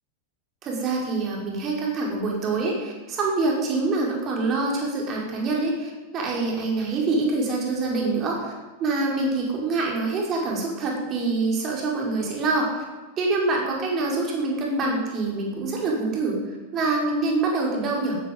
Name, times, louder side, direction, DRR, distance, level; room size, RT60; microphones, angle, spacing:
voice 1, 0.6-8.5 8.8-12.8 13.2-16.4 16.7-18.2, right 3 dB, 30° right, -2 dB, 5.5 m, -25 dB
15.5 x 14.0 x 5.6 m, 1.2 s
figure-of-eight pair, 90°, 0 cm